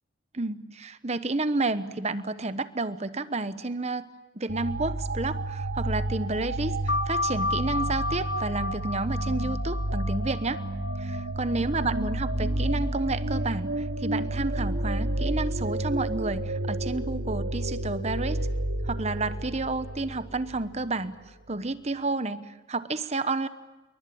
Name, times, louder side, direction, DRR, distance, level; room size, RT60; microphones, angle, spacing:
voice 1, 0.3-4.1 4.4-10.6 11.0-18.5 18.8-21.1 21.5-23.5, right 3 dB, 35° right, 13 dB, 1.1 m, -30 dB
sound 1, 4.5-20.8, right 1 dB, 75° right, 2.3 m, -30 dB
sound 2, 6.9-12.1, left 2 dB, 60° left, 0.9 m, -33 dB
28.0 x 23.0 x 8.7 m, 1.1 s
head